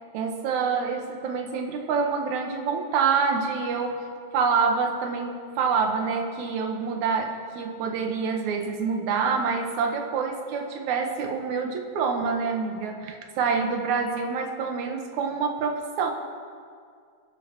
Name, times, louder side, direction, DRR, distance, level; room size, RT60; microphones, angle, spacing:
voice 1, 0.1-16.1, right 5 dB, 75° right, 3 dB, 2.5 m, -27 dB
29.5 x 11.0 x 3.0 m, 2.1 s
omnidirectional pair, 3.5 m